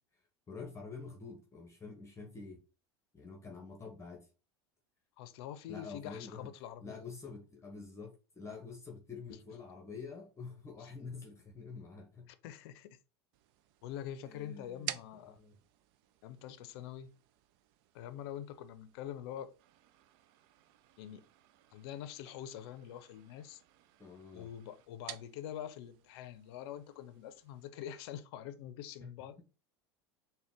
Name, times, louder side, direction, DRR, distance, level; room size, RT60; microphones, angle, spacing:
voice 1, 0.5-2.6 3.1-4.3 5.7-6.5 6.8-12.3 14.2-14.9 15.3-15.5 24.0-24.5 29.0-29.1, left 4 dB, 20° left, 0.8 m, -47 dB
voice 2, 5.2-7.1 9.3-9.4 10.8-10.9 12.3-13.0 13.8-15.4 16.2-17.1 17.9-19.5 21.0-21.3 21.7-23.6 24.3-29.4, left 10 dB, 70° left, 0.5 m, -45 dB
sound 1, 13.3-27.7, right 13 dB, 65° right, 0.4 m, -52 dB
3.8 x 2.2 x 3.5 m
supercardioid pair, 105°, 14 cm